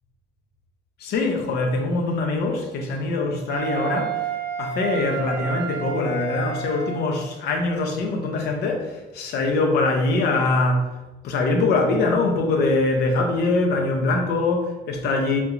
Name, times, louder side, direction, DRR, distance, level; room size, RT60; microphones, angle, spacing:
voice 1, 1.0-4.2 4.6-10.9 11.2-15.4, left 3 dB, 70° left, 3 dB, 0.7 m, -23 dB
Wind instrument woodwind instrument, 3.5-7.2, right 7 dB, 90° right, 0.4 m, -30 dB
3.6 x 2.9 x 2.5 m, 1.1 s
cardioid pair, 110°, 17 cm